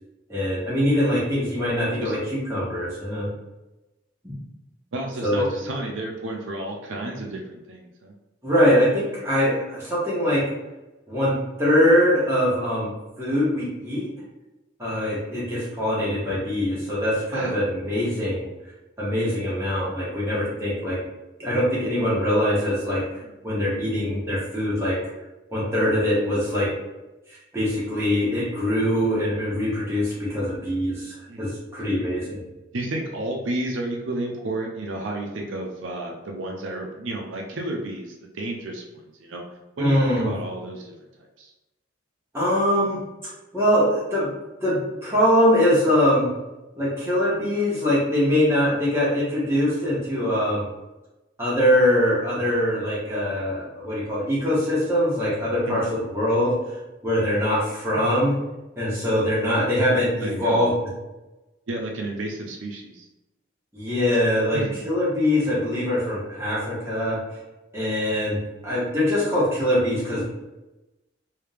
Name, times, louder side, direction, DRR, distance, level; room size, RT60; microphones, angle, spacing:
voice 1, 0.3-2.2 2.5-3.3 4.2-4.3 5.2-5.5 8.4-10.4 11.1-12.9 13.2-14.1 14.8-18.5 19.0-21.0 21.4-23.0 23.4-25.0 25.5-26.7 27.3-32.4 39.8-40.3 42.3-43.0 43.5-44.3 44.6-46.3 46.8-50.6 51.4-55.8 56.1-56.5 57.0-58.3 58.8-60.7 63.7-67.2 67.7-70.2, equal, 15° right, -9 dB, 1.3 m, -22 dB
voice 2, 4.9-8.1 17.3-17.7 31.3-31.5 32.7-39.4 39.8-41.5 55.6-55.9 58.9-59.0 60.2-60.7 61.7-63.1 64.5-64.8, right 1 dB, 85° right, 1 dB, 0.6 m, -32 dB
3.3 x 2.7 x 3.3 m, 1.0 s
head